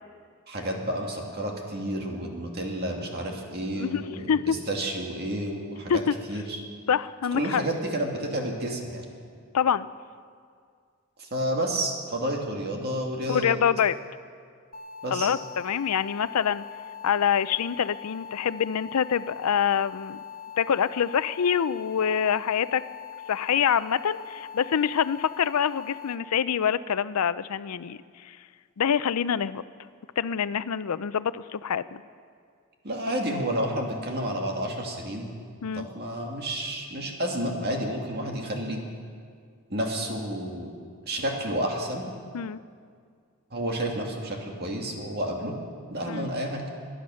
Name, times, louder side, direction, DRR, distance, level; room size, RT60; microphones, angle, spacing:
voice 1, 0.5-6.0 6.3-6.6 7.3-9.1 11.2-13.6 15.0-15.3 32.8-35.3 35.7-38.8 39.7-40.7 41.1-42.1 43.5-45.5 45.9-46.6, right 1 dB, 45° right, 1 dB, 2.2 m, -30 dB
voice 2, 3.7-4.6 5.9-6.1 6.9-7.6 9.5-9.9 13.3-14.0 15.1-16.6 17.0-20.2 20.6-22.8 23.3-28.4 28.8-29.6 30.2-32.0 35.6-35.9 42.3-42.6 46.1-46.3, left 8 dB, 90° left, 16 dB, 0.5 m, -26 dB
sound 1, 14.7-26.2, left 8 dB, 40° left, 1.5 m, -42 dB
22.5 x 10.0 x 6.4 m, 2.2 s
head